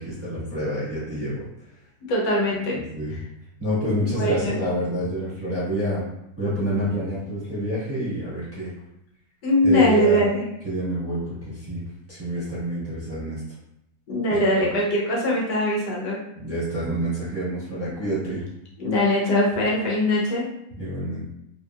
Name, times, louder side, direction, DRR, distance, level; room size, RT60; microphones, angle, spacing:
voice 1, 0.0-1.4 2.9-3.2 3.6-6.1 6.4-8.7 9.6-10.2 10.6-11.8 12.1-13.4 14.3-14.7 16.3-18.4 20.8-21.2, equal, 10° right, -11 dB, 0.9 m, -27 dB
voice 2, 2.1-2.8 3.1-3.2 4.0-4.6 9.4-10.4 14.1-16.2 18.8-20.4, left 1 dB, 75° left, -3 dB, 1.3 m, -21 dB
3.1 x 2.7 x 2.3 m, 0.81 s
omnidirectional pair, 1.9 m